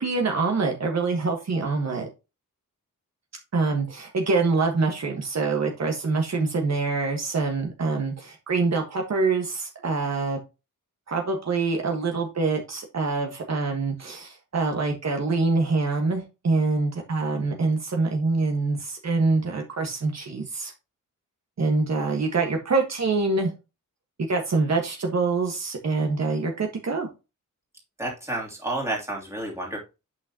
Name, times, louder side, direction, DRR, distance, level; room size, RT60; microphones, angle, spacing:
voice 1, 0.0-2.1 3.5-10.4 11.1-20.7 21.6-23.5 24.3-27.1, right 3 dB, 50° right, 2 dB, 1.5 m, -25 dB
voice 2, 28.0-29.8, right 1 dB, 10° right, -2 dB, 2.8 m, -30 dB
8.7 x 6.2 x 2.9 m, 0.27 s
wide cardioid pair, 165°, 33 cm